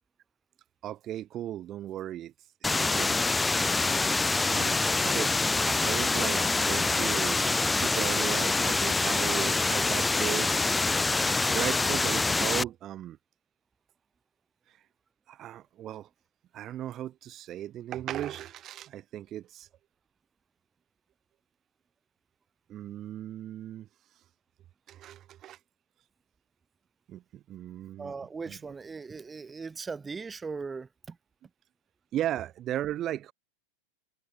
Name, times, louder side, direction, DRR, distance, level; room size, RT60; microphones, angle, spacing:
voice 1, 0.8-2.3 2.6-3.2 4.5-4.8 5.0-5.3 5.7-7.4 7.8-10.7 11.5-13.2 15.3-16.1 16.5-19.7 22.7-23.9 24.9-25.6 27.1-27.2 27.5-28.1 28.5-28.6 32.1-33.3, right 12 dB, 30° right, 1.1 m, -36 dB
sound 1, 2.6-12.6, left 3 dB, 10° left, 0.8 m, -26 dB
voice 2, 28.0-31.2, right 4 dB, 15° right, 1.6 m, -39 dB
figure-of-eight pair, 90°, 0 cm